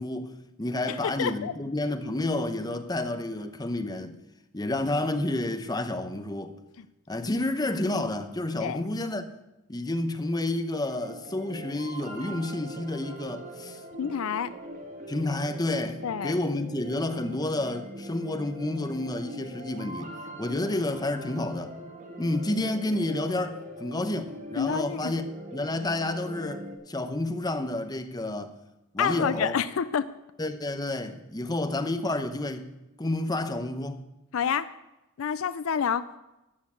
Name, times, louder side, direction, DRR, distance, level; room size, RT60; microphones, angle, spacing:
voice 1, 0.0-4.2 4.5-6.6 7.1-9.3 9.7-13.8 15.1-21.7 22.2-28.6 28.9-29.6 30.4-32.7 33.0-34.0, left 2 dB, 20° left, 0.8 m, -30 dB
voice 2, 0.9-1.5 8.6-8.8 14.0-14.5 16.0-16.4 24.6-25.1 29.0-30.1 34.3-34.7 35.2-36.1, left 7 dB, 70° left, 0.4 m, -28 dB
sound 1, 10.7-26.7, right 1 dB, 35° right, 1.7 m, -42 dB
13.0 x 7.0 x 8.2 m
head